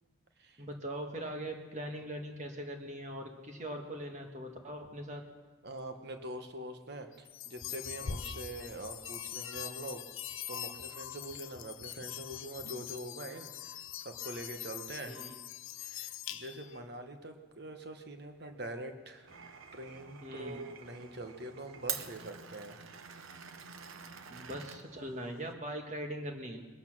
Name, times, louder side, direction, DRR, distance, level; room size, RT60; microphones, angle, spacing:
voice 1, 0.6-5.2 15.0-15.3 20.2-20.6 24.3-26.6, right 1 dB, 35° right, 3 dB, 1.6 m, -41 dB
voice 2, 5.6-10.0 10.5-15.1 15.8-22.8, right 1 dB, 50° right, 6 dB, 1.2 m, -44 dB
sound 1, 7.3-16.8, left 10 dB, 80° left, 0.7 m, -43 dB
Glass, 19.3-25.5, right 8 dB, 80° right, 0.9 m, -46 dB
20.5 x 8.3 x 6.1 m, 1.3 s
head